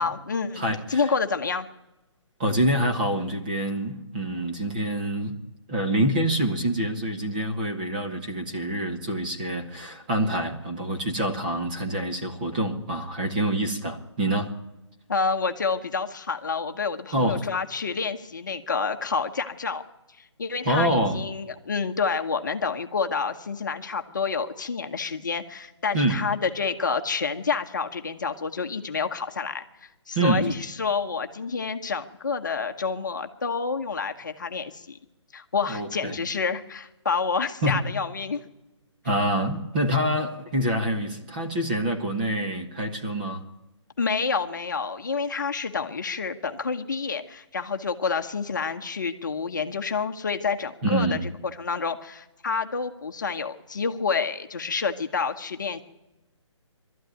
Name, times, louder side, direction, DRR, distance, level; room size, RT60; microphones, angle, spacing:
voice 1, 0.0-0.6 0.9-1.7 15.1-19.8 20.2-35.0 35.3-38.4 44.0-51.2 51.6-55.8, left 5 dB, 40° left, 5 dB, 1.1 m, -28 dB
voice 2, 0.5-1.1 2.4-5.4 5.7-14.5 17.1-17.4 20.6-21.3 25.9-26.2 30.1-30.5 35.7-36.2 37.6-37.8 39.0-43.5 50.8-51.2, right 1 dB, 15° right, 1 dB, 1.4 m, -26 dB
22.5 x 13.0 x 9.3 m, 1.0 s
hypercardioid pair, 180°, 16 cm